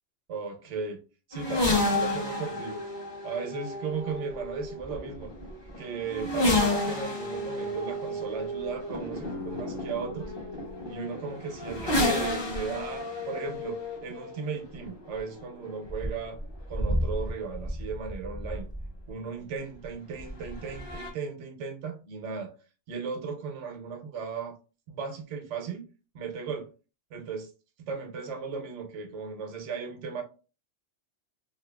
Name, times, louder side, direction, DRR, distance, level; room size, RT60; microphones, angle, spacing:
voice 1, 0.3-1.0 1.3-2.8 3.2-5.3 5.8-10.3 10.9-16.4 16.7-18.7 19.1-22.5 22.9-24.6 24.9-25.9 26.1-26.7 27.1-27.5 27.9-30.2, right 5 dB, 85° right, 1.0 m, -36 dB
sound 1, 1.3-19.1 20.2-21.1, left 1 dB, 25° left, 0.7 m, -31 dB
sound 2, 9.2-15.0, left 3 dB, 90° left, 1.2 m, -45 dB
2.7 x 2.7 x 2.2 m
omnidirectional pair, 1.2 m